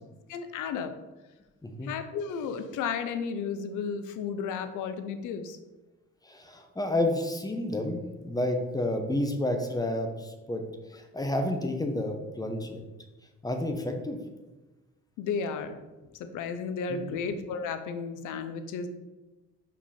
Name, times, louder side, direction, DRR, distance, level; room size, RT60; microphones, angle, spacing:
voice 1, 0.3-0.9 1.8-5.6 15.2-15.8 16.2-18.9, left 6 dB, 90° left, 9 dB, 0.7 m, -33 dB
voice 2, 6.2-10.6 10.9-12.8 13.4-14.2 16.9-17.2, left 1 dB, 10° left, 4 dB, 1.0 m, -30 dB
5.4 x 5.3 x 4.2 m, 1.1 s
cardioid pair, 90°, 30 cm